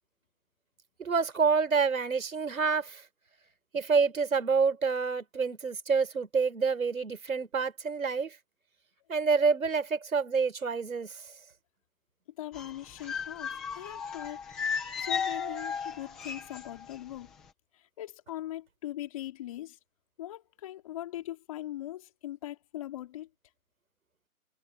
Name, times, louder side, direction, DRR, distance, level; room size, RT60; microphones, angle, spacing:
voice 1, 1.0-3.0 3.7-8.4 9.1-11.2, right 5 dB, 65° right, 5.6 m, -27 dB
voice 2, 12.4-14.4 15.0-17.3 17.7-19.8 20.2-23.3, left 14 dB, 25° left, 4.6 m, -40 dB
sound 1, 12.5-17.0 17.2-17.5, left 6 dB, ahead, 0.9 m, -35 dB
hypercardioid pair, 170°, 45 cm